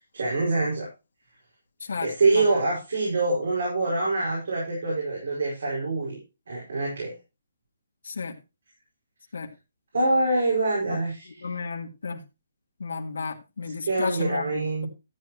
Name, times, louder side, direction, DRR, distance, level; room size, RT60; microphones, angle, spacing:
voice 1, 0.1-0.9 2.0-6.2 6.5-7.2 9.9-11.6 13.6-14.9, right 2 dB, 60° right, -4 dB, 5.3 m, -25 dB
voice 2, 8.0-8.4 9.3-9.5 10.9-11.0 11.4-12.2 12.8-14.9, left 5 dB, 85° left, 2 dB, 1.9 m, -32 dB
13.0 x 9.0 x 3.0 m, 0.27 s
hypercardioid pair, 180°, 0 cm